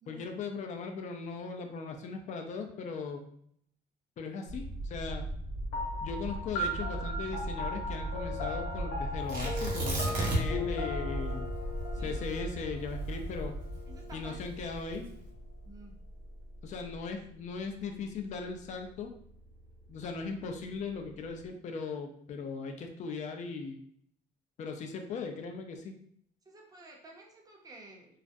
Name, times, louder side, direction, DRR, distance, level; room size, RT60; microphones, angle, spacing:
voice 1, 0.1-3.3 4.2-5.3 6.0-11.5 12.0-13.6 14.1-15.1 16.6-19.1 19.9-23.8 24.6-25.9, left 4 dB, 45° left, 4 dB, 0.4 m, -38 dB
sound 1, 4.5-21.5, right 1 dB, 80° right, 0.5 m, -39 dB
sound 2, 5.7-14.5, left 2 dB, 80° left, 0.7 m, -39 dB
Tearing, 9.3-10.7 11.0-11.1 11.6-14.0 14.7-15.1, right 1 dB, 55° right, 0.8 m, -33 dB
voice 2, 13.9-14.6 15.6-15.9 26.5-28.2, right 2 dB, 20° right, 0 dB, 0.6 m, -52 dB
2.3 x 2.1 x 2.5 m, 0.67 s
cardioid pair, 110°, 17 cm